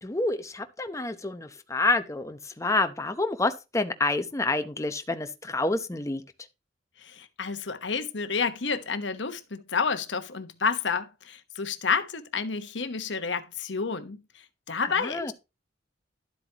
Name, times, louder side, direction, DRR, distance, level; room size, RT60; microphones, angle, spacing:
voice 1, 0.0-6.2 15.0-15.3, left 2 dB, 15° left, 0.8 m, -28 dB
voice 2, 7.0-14.2 14.7-15.3, left 5 dB, 70° left, 1.1 m, -30 dB
12.0 x 8.0 x 2.9 m
head